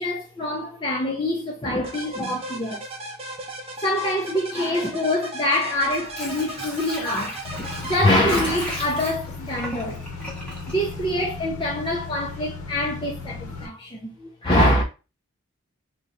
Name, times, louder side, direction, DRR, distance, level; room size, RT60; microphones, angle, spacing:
voice 1, 0.0-2.8 3.8-10.0 10.7-14.8, left 1 dB, 20° left, 0.4 m, -25 dB
sound 1, 1.8-8.7, right 1 dB, 30° right, 0.6 m, -36 dB
Water / Sink (filling or washing), 5.8-11.6 12.0-12.1, left 1 dB, 5° left, 0.8 m, -36 dB
sound 2, 7.4-13.7, left 3 dB, 90° left, 0.8 m, -36 dB
2.9 x 2.1 x 3.8 m
head